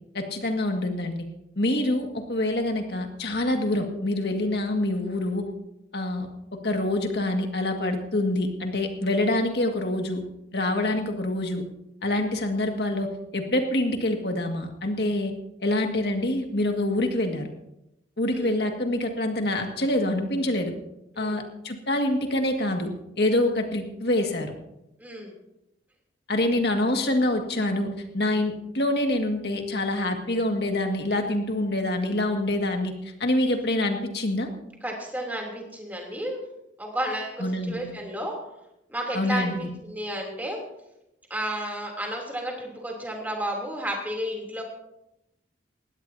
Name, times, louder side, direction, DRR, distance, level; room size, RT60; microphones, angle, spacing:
voice 1, 0.1-1.2 1.6-5.5 5.9-6.3 6.6-10.2 10.5-11.6 12.0-13.1 13.3-15.3 15.6-17.5 18.2-20.7 21.2-22.9 23.2-24.5 26.3-32.9 33.2-34.5 37.4-37.9 39.1-39.7, left 1 dB, 60° left, 4 dB, 1.9 m, -26 dB
voice 2, 25.0-25.3 34.8-36.4 36.8-38.4 38.9-40.6 41.3-44.6, right 1 dB, 10° right, 0 dB, 3.1 m, -32 dB
19.5 x 16.0 x 2.8 m, 0.87 s
head